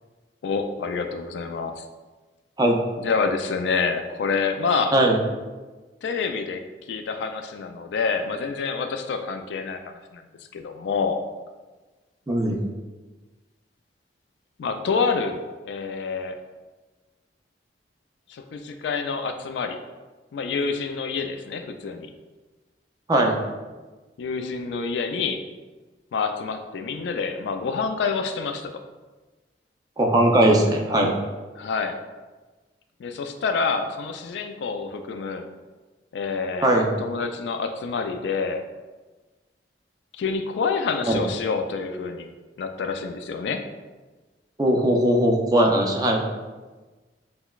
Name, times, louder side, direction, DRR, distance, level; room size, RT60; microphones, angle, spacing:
voice 1, 0.4-1.9 3.0-4.9 6.0-9.8 10.1-10.2 10.5-11.2 14.6-16.4 18.3-19.8 20.3-22.1 24.2-25.4 26.1-28.7 31.6-32.0 33.0-35.4 36.1-36.7 37.0-38.7 40.1-42.3 42.6-43.6, left 5 dB, 75° left, 7 dB, 0.3 m, -27 dB
voice 2, 12.3-12.6 23.1-23.4 30.0-31.1 36.6-36.9 41.1-41.2 44.6-46.2, right 1 dB, 20° right, 0 dB, 0.4 m, -19 dB
5.7 x 2.1 x 2.3 m, 1.3 s
head